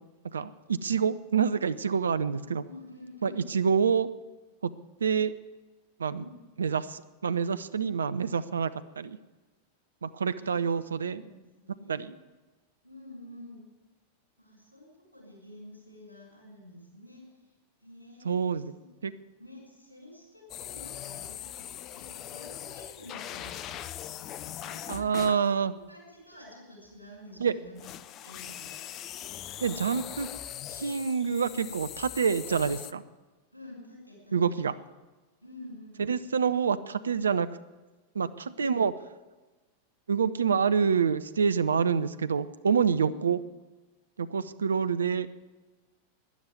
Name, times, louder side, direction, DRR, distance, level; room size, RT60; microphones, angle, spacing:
voice 1, 0.3-2.6 3.2-4.1 4.6-4.7 5.0-5.3 6.0-6.2 6.6-9.2 10.0-11.2 11.9-12.1 18.2-18.7 19.0-19.1 24.9-25.7 27.4-27.5 29.6-30.3 30.7-33.0 34.3-34.7 36.1-37.5 38.1-38.9 40.1-43.4 44.2-45.3, right 6 dB, 70° right, 15 dB, 0.6 m, -27 dB
voice 2, 2.6-3.5 6.1-6.3 10.3-12.1 12.8-13.7 14.4-17.5 17.8-18.4 19.4-23.8 24.6-28.8 33.5-34.7 35.4-36.0 38.4-38.7 43.0-43.3, left 1 dB, 85° left, -1 dB, 6.2 m, -49 dB
sound 1, 20.5-25.4 27.8-32.9, left 11 dB, 35° left, 0.6 m, -41 dB
12.5 x 10.5 x 9.4 m, 1.2 s
figure-of-eight pair, 90°, 0 cm